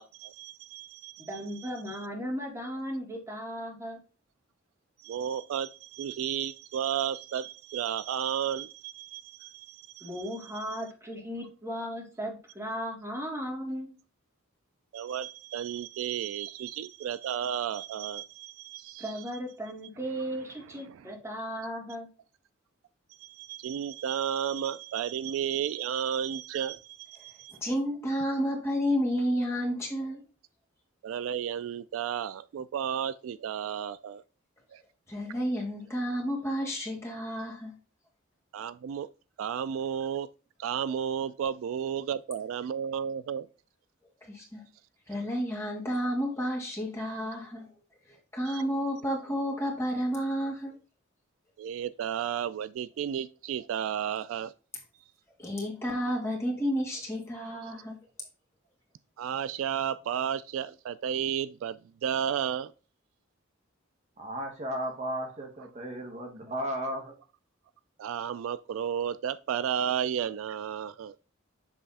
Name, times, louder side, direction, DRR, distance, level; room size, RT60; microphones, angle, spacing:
voice 1, 0.0-1.3 1.6-2.0 5.0-10.1 10.6-10.7 14.9-19.1 20.9-21.0 23.1-27.6 31.0-34.2 34.7-34.8 38.5-39.1 39.4-40.3 40.6-43.5 48.5-48.6 51.6-54.5 59.2-62.7 68.0-71.2, right 8 dB, 75° right, 0.3 m, -33 dB
voice 2, 1.2-4.0 10.0-13.9 19.0-22.1, equal, 15° right, 2.1 m, -36 dB
voice 3, 27.6-30.2 35.1-37.7 44.2-44.6 45.1-47.7 48.1-50.8 55.4-58.0, equal, 15° left, 1.9 m, -31 dB
voice 4, 64.2-67.1, right 1 dB, 35° right, 1.1 m, -35 dB
7.5 x 3.3 x 4.1 m
head